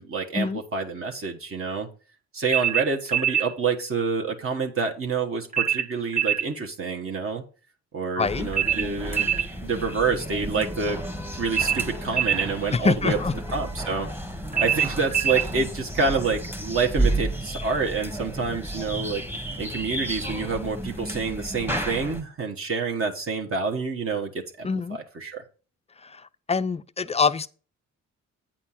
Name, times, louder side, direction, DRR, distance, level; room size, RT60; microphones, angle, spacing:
voice 1, 0.0-1.9 2.3-7.4 7.9-9.3 9.6-11.0 11.3-13.2 13.5-14.1 14.6-19.2 19.6-24.3 24.6-25.4, right 4 dB, 45° right, 1.3 m, -27 dB
sound 1, 2.5-3.5 5.5-6.5 8.5-9.5 11.5-12.5 14.5-15.5, right 9 dB, 25° right, 1.7 m, -24 dB
voice 2, 8.2-8.5 12.7-13.3 24.6-25.0 26.1-26.2 26.5-27.5, left 5 dB, 20° left, 0.4 m, -24 dB
sound 2, 8.2-22.2, right 1 dB, 5° right, 1.2 m, -32 dB
8.8 x 4.4 x 5.6 m
cardioid pair, 90°, 30 cm